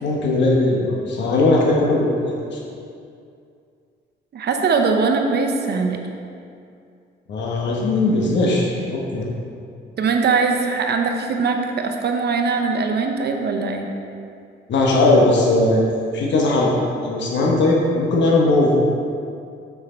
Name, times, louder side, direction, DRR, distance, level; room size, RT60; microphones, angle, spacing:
voice 1, 0.0-2.6 7.3-9.2 14.7-16.7 17.0-18.7, left 2 dB, 65° left, -3 dB, 1.2 m, -18 dB
voice 2, 4.3-6.0 10.0-13.9, right 4 dB, 55° right, 4 dB, 0.9 m, -21 dB
6.3 x 6.0 x 4.4 m, 2.4 s
cardioid pair, 90°, 20 cm